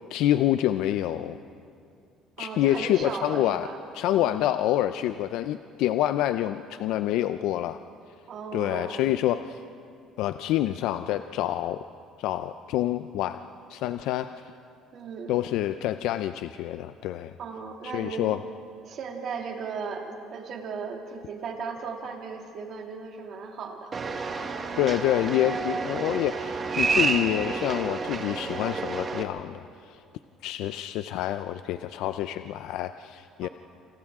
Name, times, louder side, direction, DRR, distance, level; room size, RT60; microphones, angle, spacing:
voice 1, 0.1-1.4 2.4-3.7 3.9-7.8 8.5-9.6 10.2-11.8 12.2-13.4 13.7-14.3 15.3-17.3 17.8-18.4 24.8-30.0 30.4-33.5, left 13 dB, 75° left, 10 dB, 0.5 m, -27 dB
voice 2, 2.4-3.8 4.1-4.5 8.3-9.1 14.9-15.4 17.4-18.4 18.8-23.9 24.2-24.5 33.4-33.5, right 5 dB, 50° right, 2 dB, 2.5 m, -37 dB
sound 1, 23.9-29.2, right 4 dB, 30° right, 1.4 m, -29 dB
28.0 x 27.5 x 3.7 m, 2.4 s
cardioid pair, 150°, 0 cm